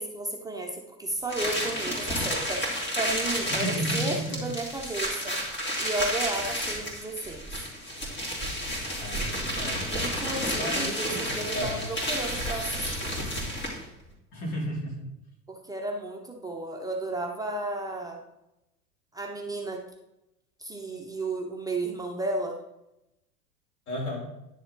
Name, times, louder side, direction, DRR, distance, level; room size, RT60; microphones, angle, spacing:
voice 1, 0.0-5.4 5.8-7.5 9.9-13.1 15.5-18.2 19.1-19.8 20.6-22.6, right 2 dB, 10° right, 0 dB, 1.0 m, -33 dB
sound 1, 1.3-13.9, equal, 25° left, 3.1 m, -31 dB
voice 2, 3.5-4.4 9.0-10.0 10.5-11.8 14.3-15.1 23.9-24.2, equal, 70° left, -2 dB, 3.8 m, -33 dB
10.5 x 6.7 x 3.8 m, 0.89 s
hypercardioid pair, 90°, 46 cm